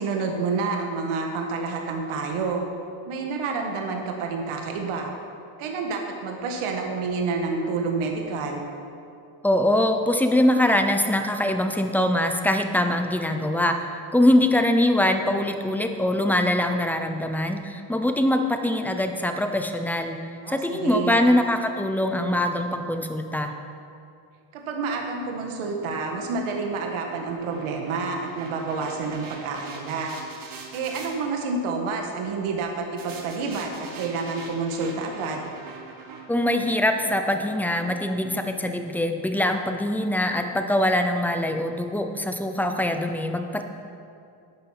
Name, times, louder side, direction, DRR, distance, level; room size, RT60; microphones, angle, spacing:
voice 1, 0.0-2.6 3.1-5.1 5.6-8.7 20.4-21.2 24.5-30.1 30.7-35.5, right 4 dB, 80° right, 2 dB, 1.7 m, -29 dB
voice 2, 9.4-13.8 14.1-20.2 20.5-23.5 36.3-43.6, left 1 dB, 5° left, 6 dB, 0.5 m, -23 dB
sound 1, 24.9-31.1 33.0-39.2, right 5 dB, 40° right, 1.7 m, -44 dB
11.5 x 9.3 x 5.8 m, 2.5 s
cardioid pair, 150°, 50 cm